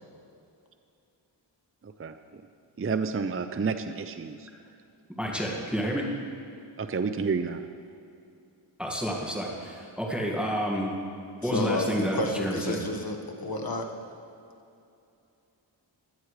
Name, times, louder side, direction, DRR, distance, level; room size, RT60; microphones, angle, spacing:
voice 1, 1.8-2.4 2.8-4.5 6.8-7.7, right 5 dB, 30° right, 9 dB, 0.5 m, -30 dB
voice 2, 5.2-6.0 8.8-10.9 11.4-12.8, equal, ahead, -2 dB, 1.8 m, -29 dB
voice 3, 11.4-13.9, left 2 dB, 50° left, 3 dB, 1.4 m, -31 dB
16.5 x 12.0 x 3.2 m, 2.6 s
wide cardioid pair, 50°, 46 cm